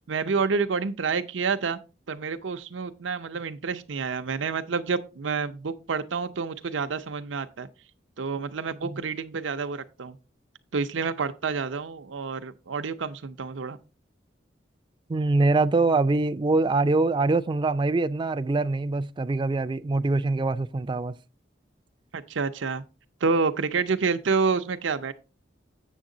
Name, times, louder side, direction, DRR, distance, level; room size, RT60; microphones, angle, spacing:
voice 1, 0.1-1.8 2.1-7.7 8.2-10.2 10.7-13.8 22.1-22.8 23.2-25.1, right 5 dB, 85° right, 0.6 m, -28 dB
voice 2, 15.1-21.2, right 3 dB, 25° right, 0.3 m, -24 dB
7.3 x 7.2 x 3.7 m
head